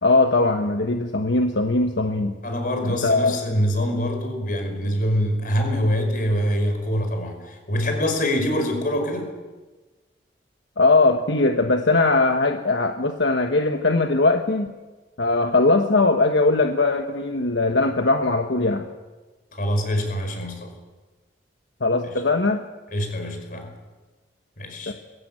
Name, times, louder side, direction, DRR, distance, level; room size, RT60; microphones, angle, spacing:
voice 1, 0.0-2.3 2.9-3.3 10.8-14.7 15.2-18.8 21.8-22.6 24.9-25.0, left 3 dB, 75° left, 5 dB, 1.2 m, -20 dB
voice 2, 2.4-9.3 19.5-20.7 22.0-22.2 22.9-23.7 24.6-24.9, equal, 50° left, 5 dB, 5.2 m, -24 dB
22.5 x 16.0 x 8.9 m, 1.3 s
head